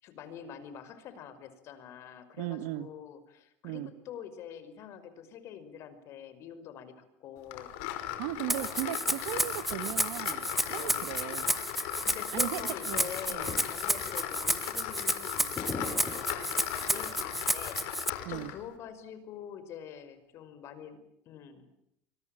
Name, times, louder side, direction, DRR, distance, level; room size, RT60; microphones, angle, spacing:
voice 1, 0.0-7.7 8.5-8.8 10.6-11.0 12.0-21.0 21.3-21.7, left 8 dB, 55° left, 12 dB, 5.5 m, -46 dB
voice 2, 2.4-2.9 3.6-3.9 8.2-11.5 12.3-13.6 18.2-18.5, right 16 dB, 75° right, 15 dB, 1.6 m, -37 dB
sound 1, 7.5-18.6, left 12 dB, 75° left, 5.3 m, -38 dB
Rattle (instrument), 8.5-18.1, right 1 dB, 5° right, 1.0 m, -32 dB
sound 2, 13.3-13.9 14.3-14.6 15.5-17.2, left 4 dB, 30° left, 5.3 m, -41 dB
25.5 x 24.0 x 9.1 m, 0.78 s
supercardioid pair, 105°, 6 cm